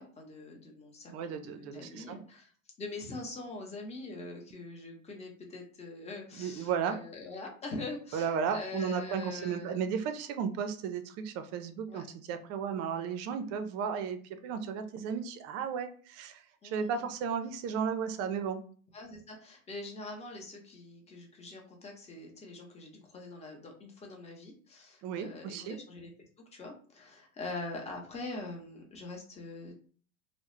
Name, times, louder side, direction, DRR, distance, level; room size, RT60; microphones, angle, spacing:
voice 1, 0.0-2.5 2.8-9.8 11.9-12.0 16.6-17.1 18.9-26.1 26.5-29.7, left 2 dB, 15° left, 0 dB, 0.7 m, -43 dB
voice 2, 1.1-2.2 6.3-7.0 8.1-18.6 25.0-25.8, right 7 dB, 40° right, 9 dB, 0.4 m, -34 dB
2.3 x 2.0 x 3.0 m, 0.44 s
hypercardioid pair, 100°, 41 cm